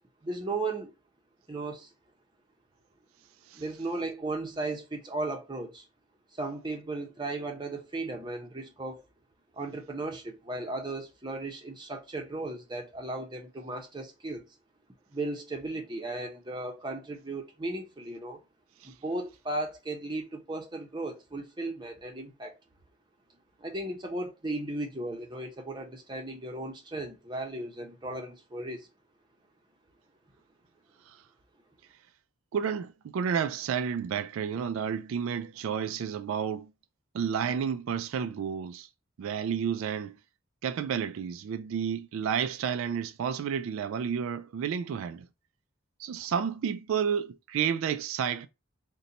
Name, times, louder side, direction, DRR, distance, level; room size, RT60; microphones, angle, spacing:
voice 1, 0.2-0.9 1.5-1.9 3.5-5.9 6.3-9.0 9.5-14.4 15.1-18.4 19.0-22.5 23.6-28.9, right 2 dB, 20° right, 0.7 m, -36 dB
voice 2, 32.5-36.7 37.1-38.9 39.2-40.2 40.6-45.3 46.0-48.5, right 7 dB, 75° right, 0.3 m, -31 dB
4.0 x 2.2 x 3.9 m
head